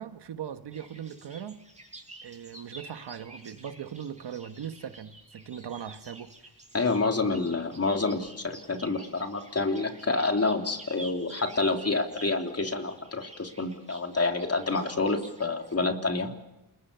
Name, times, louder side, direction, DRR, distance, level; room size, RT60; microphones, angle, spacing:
voice 1, 0.0-1.6 2.2-6.3 8.0-8.1, right 8 dB, 85° right, 1.5 m, -39 dB
sound 1, 0.7-15.7, right 1 dB, 15° right, 7.4 m, -50 dB
voice 2, 6.7-16.3, left 3 dB, 40° left, 3.4 m, -28 dB
29.5 x 22.0 x 6.9 m
cardioid pair, 65°, 40 cm